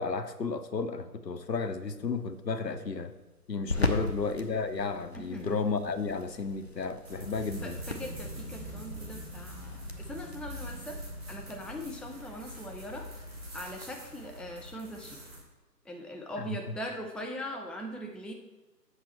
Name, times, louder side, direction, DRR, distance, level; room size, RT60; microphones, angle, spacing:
voice 1, 0.0-3.1 3.5-7.8 16.4-16.5, left 4 dB, 75° left, 9 dB, 0.8 m, -33 dB
sound 1, 1.6-13.8, left 2 dB, 40° left, 0.6 m, -40 dB
voice 2, 3.7-4.0 5.1-5.5 7.6-11.0 11.3-13.1 13.5-15.2 15.9-18.3, equal, ahead, 1 dB, 0.4 m, -41 dB
sound 2, 7.0-15.4, right 1 dB, 35° right, 2.3 m, -43 dB
8.1 x 5.7 x 4.2 m, 1.2 s
figure-of-eight pair, 150°, 50 cm